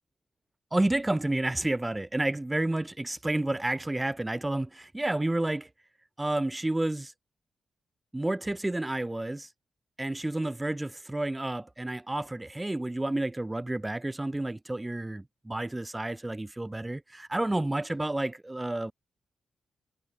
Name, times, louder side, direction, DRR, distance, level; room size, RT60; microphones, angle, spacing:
voice 1, 0.7-5.7 6.2-7.1 8.1-9.5 10.0-18.9, right 1 dB, 15° right, 4.4 m, -30 dB
cardioid pair, 60°, 0 cm